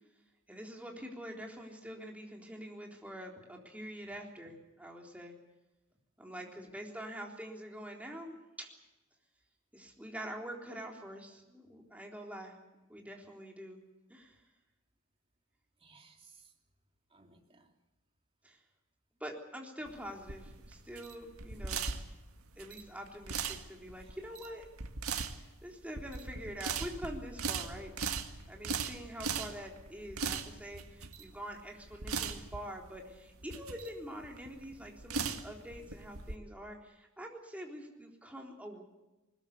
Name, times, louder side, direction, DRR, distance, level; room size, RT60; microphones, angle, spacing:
voice 1, 0.5-5.4 6.2-8.7 9.7-12.6 12.9-13.8 14.1-14.4 18.4-18.6 19.2-21.9 22.6-24.7 25.6-27.9 28.5-38.8, equal, 5° right, 0 dB, 3.7 m, -45 dB
voice 2, 6.4-6.9 15.8-16.5 17.1-17.7 24.0-24.2, right 4 dB, 25° right, 2 dB, 3.0 m, -61 dB
sound 1, 19.9-36.3, right 5 dB, 80° right, 1.9 m, -39 dB
21.0 x 20.5 x 8.3 m, 1.0 s
head